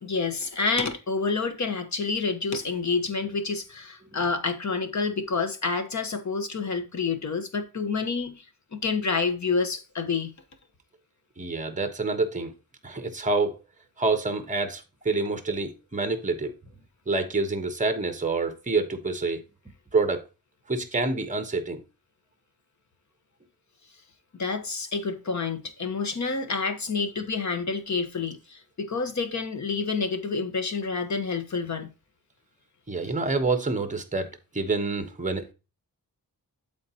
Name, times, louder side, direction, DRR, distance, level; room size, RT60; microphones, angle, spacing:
voice 1, 0.0-8.4 8.7-10.3 24.3-31.9, left 4 dB, 50° left, 1.3 m, -28 dB
voice 2, 11.4-12.5 12.8-13.6 14.0-16.5 17.1-19.4 19.9-20.2 20.7-21.8 32.9-35.5, right 3 dB, 20° right, 1.1 m, -27 dB
12.0 x 4.1 x 2.9 m
wide cardioid pair, 170°, 35 cm